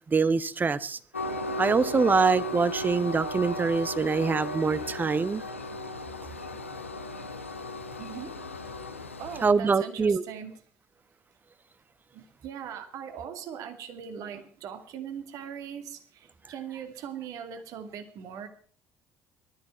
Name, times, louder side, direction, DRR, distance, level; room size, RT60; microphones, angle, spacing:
voice 1, 0.1-1.0 1.6-5.4 9.4-10.2, right 4 dB, 25° right, 16 dB, 1.2 m, -24 dB
Train, 1.1-9.5, left 1 dB, 90° left, 1.0 m, -35 dB
voice 2, 8.0-8.4 9.2-10.6 12.1-18.5, right 8 dB, 60° right, 8 dB, 2.5 m, -40 dB
19.5 x 13.5 x 4.6 m, 0.43 s
figure-of-eight pair, 55°, 7 cm